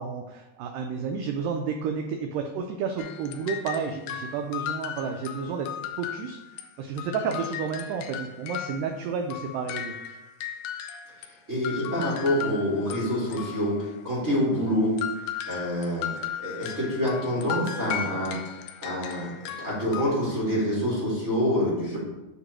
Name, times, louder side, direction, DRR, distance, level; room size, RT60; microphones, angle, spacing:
voice 1, 0.0-5.7 6.0-10.0, right 5 dB, 85° right, 4 dB, 2.0 m, -31 dB
sound 1, 3.0-6.7 7.0-11.3 11.6-14.0 15.0-20.0, left 9 dB, 80° left, 1.9 m, -36 dB
voice 2, 11.5-14.9 15.5-16.1 16.4-22.0, equal, 55° right, -6 dB, 0.7 m, -27 dB
8.2 x 3.0 x 6.1 m, 1.0 s
omnidirectional pair, 4.4 m